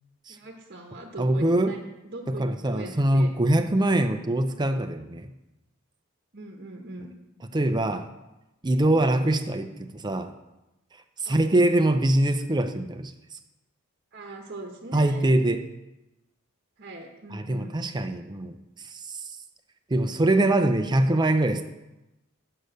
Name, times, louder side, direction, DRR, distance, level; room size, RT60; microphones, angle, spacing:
voice 1, 0.3-3.3 6.3-7.1 11.3-11.5 14.1-15.3 16.8-17.8, right 2 dB, 45° right, 2 dB, 1.0 m, -41 dB
voice 2, 1.2-1.7 2.4-5.3 7.5-8.1 8.6-10.3 11.2-13.1 14.9-15.6 17.3-19.3 19.9-21.6, right 1 dB, 20° right, 7 dB, 0.5 m, -23 dB
6.6 x 6.6 x 7.8 m, 0.96 s
head